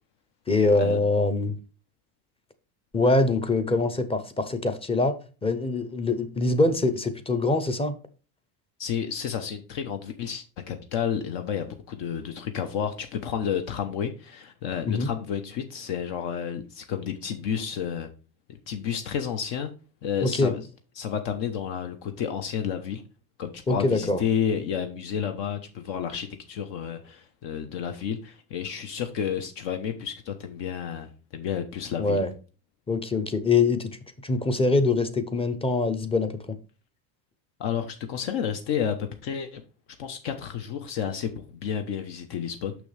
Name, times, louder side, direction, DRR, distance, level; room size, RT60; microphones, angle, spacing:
voice 1, 0.5-1.6 2.9-5.1 5.4-7.9 14.9-15.1 20.2-20.5 23.7-24.2 32.0-32.3 32.9-33.9 34.2-36.4, left 3 dB, 10° left, 0.6 m, -24 dB
voice 2, 8.8-18.1 18.7-19.7 20.0-20.6 21.0-23.0 23.4-32.2 37.6-39.6 40.0-42.8, left 8 dB, 60° left, 1.1 m, -31 dB
6.4 x 6.2 x 3.3 m
cardioid pair, 130°, 49 cm